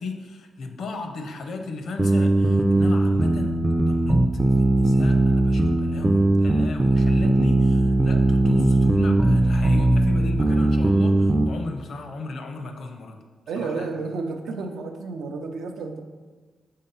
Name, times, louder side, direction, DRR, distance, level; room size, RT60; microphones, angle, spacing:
voice 1, 0.0-13.2 13.5-14.0, left 3 dB, 70° left, 6 dB, 0.7 m, -35 dB
sound 1, 2.0-11.5, right 2 dB, 20° right, 0.4 m, -19 dB
voice 2, 13.5-16.0, right 4 dB, 85° right, 5 dB, 0.6 m, -31 dB
5.6 x 3.7 x 5.5 m, 1.4 s
cardioid pair, 85°, 0 cm